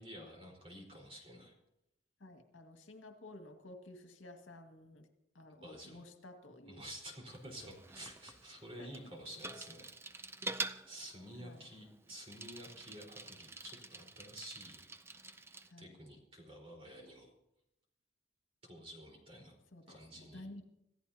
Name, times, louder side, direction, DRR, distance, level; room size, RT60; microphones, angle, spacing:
voice 1, 0.0-1.5 5.6-6.0 6.7-9.9 10.9-14.8 15.8-17.3 18.6-19.6 19.9-20.5, equal, 30° right, 0 dB, 4.6 m, -50 dB
voice 2, 2.2-5.1 5.3-6.8 8.8-8.9 11.4-11.7 15.7-16.0 19.7-20.6, left 1 dB, 90° left, 5 dB, 2.0 m, -53 dB
Bicycle, 7.3-15.7, right 3 dB, 15° right, 0.5 m, -47 dB
26.5 x 15.5 x 2.9 m, 0.83 s
head